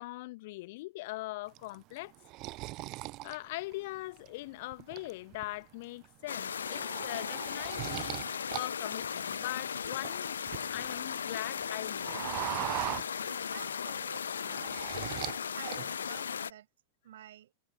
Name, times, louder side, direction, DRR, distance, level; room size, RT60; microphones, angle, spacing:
voice 1, 0.0-2.1 3.2-8.2 8.5-10.4 10.7-12.3, left 20 dB, 50° left, 1.4 m, -41 dB
sound 1, 1.6-4.3 4.7-5.4 5.8-6.1 6.4-8.6 8.9-11.0 11.3-13.7 14.0-15.4 15.7-16.3, right 21 dB, 40° right, 0.6 m, -40 dB
sound 2, 6.3-16.5, left 7 dB, 70° left, 0.3 m, -37 dB
voice 2, 13.2-14.8 15.6-16.7 17.0-17.5, right 12 dB, 60° right, 7.6 m, -51 dB
figure-of-eight pair, 90°, 0 cm